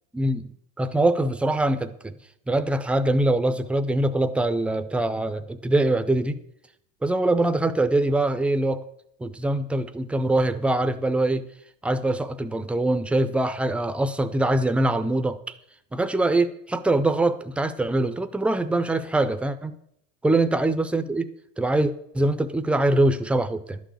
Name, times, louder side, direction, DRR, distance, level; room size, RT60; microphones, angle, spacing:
voice 1, 0.1-0.5 0.8-2.1 2.5-6.4 7.0-8.8 9.2-11.4 11.8-15.4 15.9-19.7 20.2-21.3 21.6-23.8, right 2 dB, 5° right, 10 dB, 0.3 m, -23 dB
11.5 x 6.3 x 8.2 m, 0.73 s
supercardioid pair, 130°, 41 cm